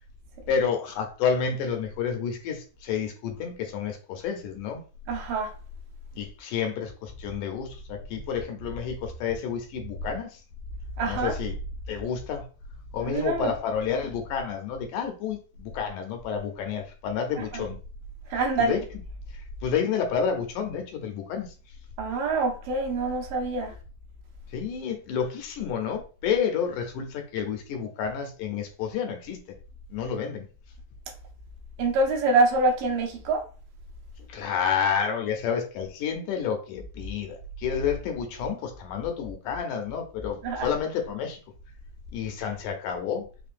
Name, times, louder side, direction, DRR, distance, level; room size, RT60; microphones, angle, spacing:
voice 1, 0.5-4.8 6.1-10.4 11.0-11.5 11.9-12.4 12.9-17.8 18.7-18.8 19.3-21.5 24.5-29.4 29.9-30.5 34.3-41.4 42.1-43.3, left 7 dB, 80° left, 2.1 m, -30 dB
voice 2, 5.1-5.5 11.0-11.3 13.0-13.5 17.4-17.6 18.3-18.8 22.0-23.7 31.8-33.4 40.4-40.7, right 3 dB, 85° right, 2.4 m, -25 dB
5.6 x 2.2 x 2.5 m
omnidirectional pair, 3.7 m